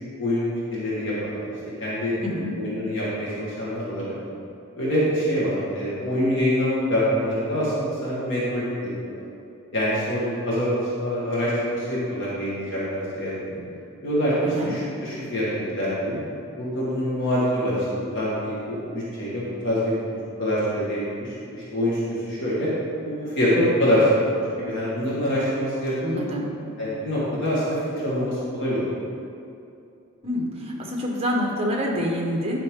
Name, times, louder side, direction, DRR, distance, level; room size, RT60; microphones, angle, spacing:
voice 1, 0.2-1.4 1.8-2.1 2.5-4.1 4.8-9.2 9.7-13.6 14.0-16.2 16.6-22.7 23.0-26.2 26.8-28.9, equal, 55° left, -8 dB, 1.7 m, -25 dB
voice 2, 26.0-26.5 30.2-32.6, equal, 25° right, -1 dB, 1.1 m, -27 dB
10.5 x 5.5 x 3.7 m, 2.6 s
head